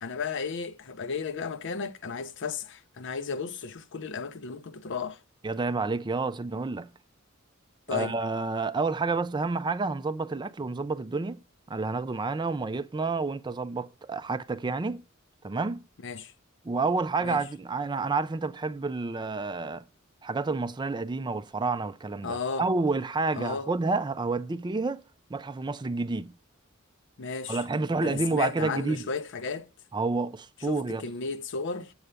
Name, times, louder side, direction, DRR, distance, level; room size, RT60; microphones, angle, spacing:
voice 1, 0.0-5.2 7.9-8.2 16.0-16.3 17.2-17.4 22.2-22.7 23.3-23.7 27.2-27.6 28.0-29.7 30.7-31.9, left 5 dB, 60° left, 0.6 m, -34 dB
voice 2, 5.4-6.9 7.9-11.4 11.7-15.0 15.4-15.8 16.6-19.8 20.2-25.0 25.3-26.3 27.5-29.1 29.9-31.0, right 3 dB, 20° right, 0.4 m, -29 dB
7.9 x 5.6 x 4.9 m
head